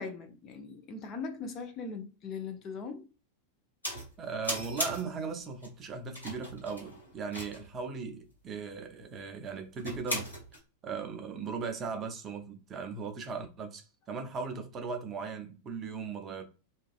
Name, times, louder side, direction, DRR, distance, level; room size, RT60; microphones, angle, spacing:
voice 1, 0.0-3.1, left 4 dB, 30° left, 0.4 m, -40 dB
sound 1, 3.8-4.1 4.4-5.2 5.6-5.7 6.1-7.7 9.8-10.6, equal, 85° left, 1.2 m, -37 dB
voice 2, 4.2-10.4 10.8-16.4, right 5 dB, 25° right, 0.5 m, -38 dB
2.5 x 2.3 x 2.4 m
figure-of-eight pair, 90°, 0 cm